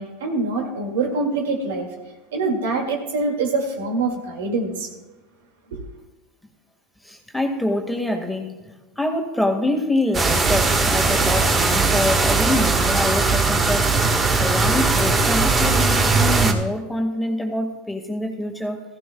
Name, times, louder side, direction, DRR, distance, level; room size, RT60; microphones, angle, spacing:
voice 1, 0.0-1.9 2.3-4.9 5.7-5.8, right 3 dB, 85° right, 2.2 m, -24 dB
voice 2, 7.0-13.9 14.3-18.8, left 1 dB, 5° left, 1.8 m, -25 dB
sound 1, 10.1-16.5, right 3 dB, 25° right, 1.6 m, -19 dB
16.5 x 15.0 x 2.3 m
hypercardioid pair, 105°, 0 cm